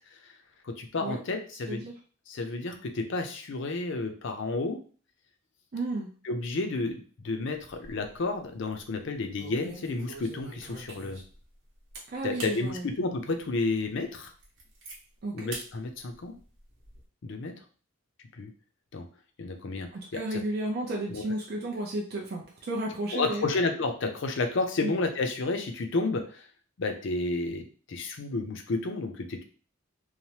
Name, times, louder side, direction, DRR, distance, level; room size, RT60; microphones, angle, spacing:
voice 1, 0.6-1.8 2.3-4.8 6.2-11.2 12.2-14.3 15.3-16.3 17.2-17.5 18.4-18.5 18.9-19.1 19.4-20.4 21.1-21.2 23.1-26.5 26.8-29.4, left 3 dB, 60° left, 5 dB, 0.5 m, -31 dB
voice 2, 5.7-6.1 12.1-12.9 15.2-15.5 19.9-23.5 24.8-24.9, right 2 dB, 50° right, -2 dB, 0.5 m, -33 dB
sound 1, 7.5-8.2 8.6-8.8 9.3-11.4 11.9-12.0 12.3-12.6 13.1-13.2 13.7-13.8 14.1-15.0 15.5-15.7 16.1-17.0, right 2 dB, 70° right, 0.9 m, -44 dB
3.1 x 2.0 x 2.8 m, 0.40 s
head